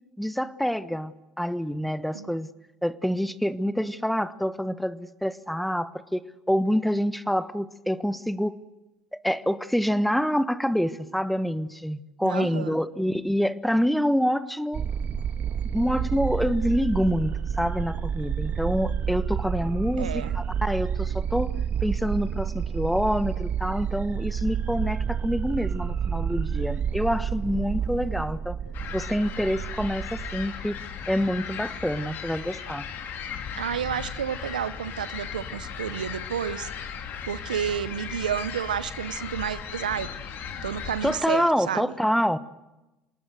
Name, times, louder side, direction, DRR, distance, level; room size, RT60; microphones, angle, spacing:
voice 1, 0.2-2.5 2.8-8.6 9.2-14.8 15.7-21.5 21.8-28.6 28.9-30.7 31.1-32.9 41.0-42.4, equal, ahead, 14 dB, 1.3 m, -26 dB
voice 2, 12.2-12.8 20.0-20.3 33.6-36.7 37.2-40.1 40.6-41.9, right 8 dB, 90° right, 15 dB, 0.8 m, -31 dB
sound 1, 14.7-30.5, right 7 dB, 40° right, 1.6 m, -29 dB
sound 2, 28.7-41.2, left 7 dB, 55° left, 3.1 m, -37 dB
27.5 x 19.0 x 7.9 m, 1.0 s
hypercardioid pair, 70°, 4 cm